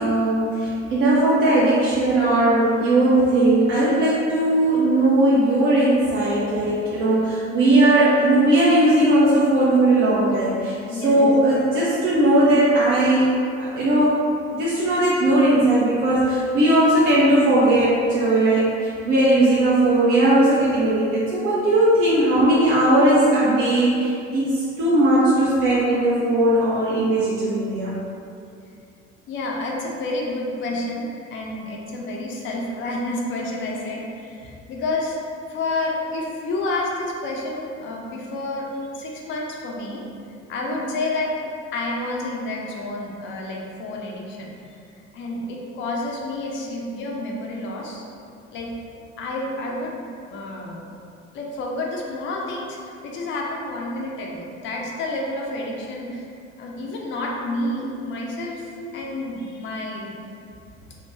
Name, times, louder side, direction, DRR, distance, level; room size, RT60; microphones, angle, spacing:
voice 1, 0.0-14.3 14.5-27.9 58.8-58.9, right 1 dB, 35° right, -8 dB, 0.4 m, -18 dB
voice 2, 10.9-11.2 29.3-35.2 35.5-38.7 38.9-40.0 40.5-41.3 41.7-44.8 45.1-48.0 48.5-48.7 49.2-50.0 50.3-50.8 51.3-56.3 56.6-60.1, left 2 dB, 30° left, -1 dB, 0.5 m, -29 dB
2.3 x 2.1 x 3.0 m, 2.5 s
figure-of-eight pair, 60°, 38 cm